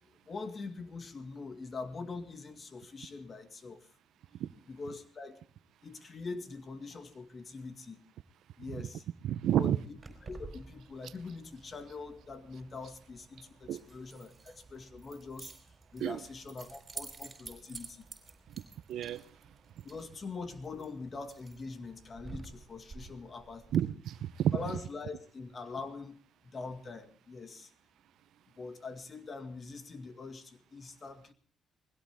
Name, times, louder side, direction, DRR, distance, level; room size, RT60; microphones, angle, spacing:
voice 1, 0.0-3.9 4.7-5.4 5.8-8.0 8.6-9.1 9.6-18.0 19.8-23.7 24.5-26.2 26.4-27.7 28.6-31.3, left 4 dB, 40° left, 2.0 m, -43 dB
voice 2, 9.2-9.8 13.7-13.8 16.0-16.2 18.9-19.2 23.7-24.6, right 11 dB, 80° right, 0.7 m, -29 dB
Keys jangling, 10.0-23.8, right 4 dB, 30° right, 4.6 m, -51 dB
21.0 x 16.5 x 3.6 m
cardioid pair, 90°, 0 cm